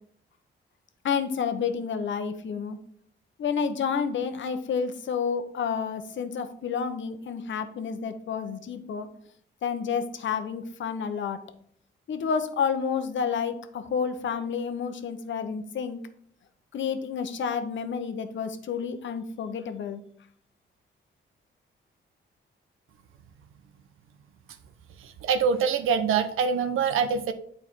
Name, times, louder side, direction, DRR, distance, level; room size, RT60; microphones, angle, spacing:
voice 1, 1.0-2.8 3.4-9.1 9.6-11.4 12.1-16.0 16.7-20.0, left 6 dB, 65° left, 9 dB, 0.9 m, -30 dB
voice 2, 25.0-27.3, right 6 dB, 80° right, 9 dB, 0.7 m, -25 dB
8.6 x 4.3 x 4.5 m, 0.63 s
cardioid pair, 85°, 21 cm